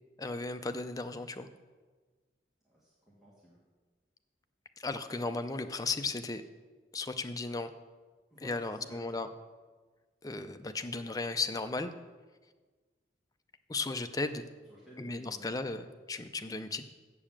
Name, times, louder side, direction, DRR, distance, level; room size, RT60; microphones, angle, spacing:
voice 1, 0.2-1.5 4.8-6.4 6.9-7.7 8.4-9.3 10.2-11.9 13.7-14.4 15.0-16.9, left 3 dB, 20° left, 9 dB, 0.4 m, -35 dB
voice 2, 2.6-3.6 8.3-9.2 14.6-15.5, equal, ahead, -8 dB, 1.7 m, -54 dB
7.5 x 6.9 x 7.2 m, 1.4 s
head